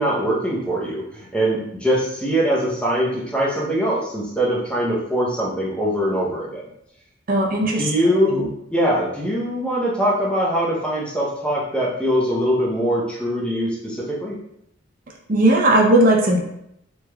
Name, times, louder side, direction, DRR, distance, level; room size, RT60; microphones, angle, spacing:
voice 1, 0.0-6.6 7.6-14.4, equal, 5° left, -4 dB, 0.7 m, -22 dB
voice 2, 7.3-7.8 8.1-8.5 15.3-16.4, right 1 dB, 45° right, 0 dB, 0.5 m, -17 dB
3.4 x 3.0 x 2.2 m, 0.77 s
head